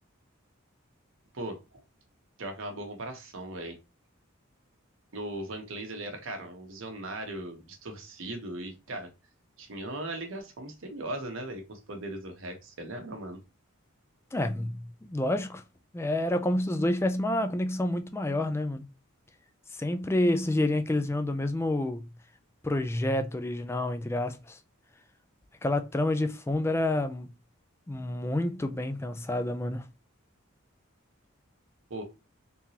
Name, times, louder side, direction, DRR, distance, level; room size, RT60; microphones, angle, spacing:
voice 1, 1.3-1.8 2.4-3.8 5.1-9.1 9.6-13.4 31.9-32.0, right 1 dB, 65° right, 1.0 m, -38 dB
voice 2, 14.3-15.6 15.9-18.9 19.8-22.1 22.6-24.6 25.6-27.3 27.9-29.8, left 1 dB, 10° left, 0.3 m, -28 dB
3.6 x 2.9 x 2.8 m
head